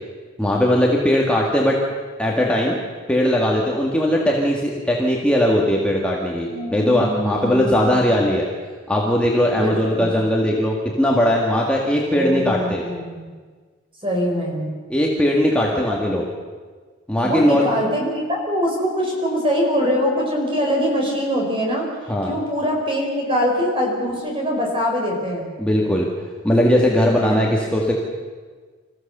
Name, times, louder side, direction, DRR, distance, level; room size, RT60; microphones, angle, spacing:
voice 1, 0.4-1.8 2.2-2.8 3.1-8.5 8.9-12.8 14.9-16.2 17.1-17.6 22.1-22.3 25.6-26.1 26.4-27.9, equal, 5° left, -3 dB, 1.9 m, -19 dB
voice 2, 6.5-8.1 9.6-10.1 12.1-13.3 14.0-14.7 15.9-16.0 17.2-21.9 22.2-25.5 27.0-27.4, equal, 25° right, -1 dB, 5.4 m, -23 dB
26.5 x 15.0 x 6.8 m, 1.5 s
head